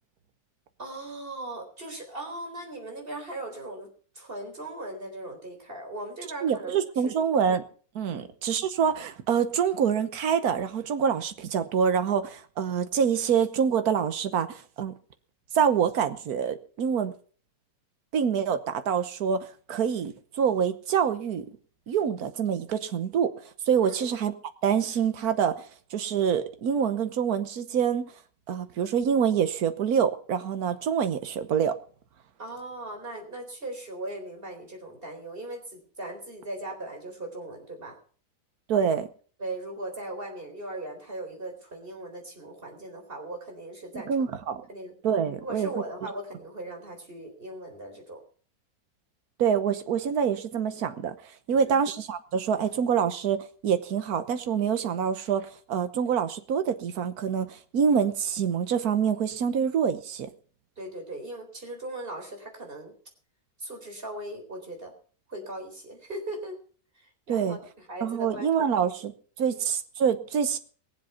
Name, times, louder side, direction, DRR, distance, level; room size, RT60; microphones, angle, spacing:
voice 1, 0.8-3.9 4.2-6.8 8.1-8.3 23.8-24.1 32.4-37.9 39.4-44.1 44.7-44.9 45.4-48.2 51.5-51.8 60.8-62.9 63.6-64.9 65.3-66.6 67.0-67.6 67.9-68.8 69.5-69.6, right 1 dB, 35° right, 4.1 m, -38 dB
voice 2, 6.4-7.6 7.9-14.9 15.5-17.1 18.1-21.5 21.9-24.3 24.6-28.1 28.5-31.8 38.7-39.1 43.9-44.7 45.0-45.7 49.4-60.3 67.3-67.6 68.0-69.1 69.4-70.6, right 7 dB, 80° right, 1.6 m, -26 dB
21.5 x 7.8 x 5.7 m
omnidirectional pair, 1.6 m